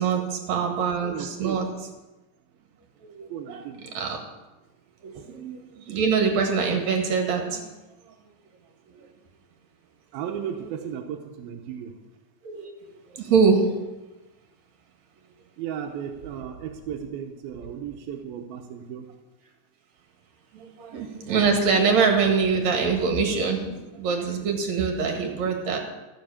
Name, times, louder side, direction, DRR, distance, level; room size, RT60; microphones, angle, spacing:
voice 1, 0.0-1.7 3.0-3.6 3.9-4.2 5.0-7.7 8.9-9.0 12.4-12.7 13.1-13.9 20.5-25.8, right 5 dB, 55° right, 2 dB, 2.8 m, -24 dB
voice 2, 1.1-1.6 3.3-3.8 5.1-5.3 10.1-11.9 15.6-19.1, right 8 dB, 90° right, 1 dB, 2.8 m, -35 dB
15.0 x 7.9 x 6.9 m, 1.1 s
omnidirectional pair, 4.2 m